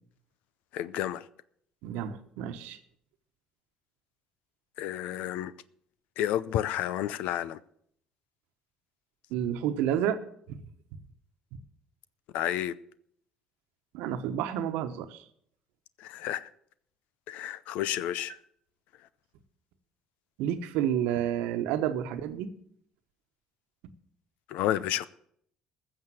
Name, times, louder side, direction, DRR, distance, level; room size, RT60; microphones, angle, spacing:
voice 1, 0.7-1.2 4.8-5.5 6.2-7.6 12.3-12.7 16.0-16.5 17.3-18.4 24.5-25.1, left 12 dB, 80° left, 0.6 m, -30 dB
voice 2, 1.8-2.8 9.3-10.2 10.5-10.6 13.9-15.2 20.4-22.5, right 10 dB, 85° right, 1.1 m, -30 dB
14.5 x 6.8 x 7.7 m
supercardioid pair, 80°, 2 cm